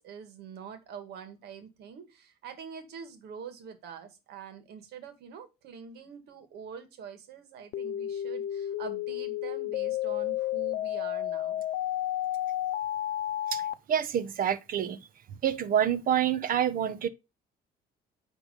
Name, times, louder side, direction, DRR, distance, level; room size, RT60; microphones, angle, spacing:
voice 1, 0.0-11.6, right 7 dB, 75° right, 2.0 m, -45 dB
sound 1, 7.7-13.7, left 12 dB, 75° left, 0.6 m, -31 dB
voice 2, 13.9-15.0 15.4-17.1, right 9 dB, 55° right, 1.0 m, -27 dB
9.8 x 3.5 x 5.0 m
cardioid pair, 110°, 17 cm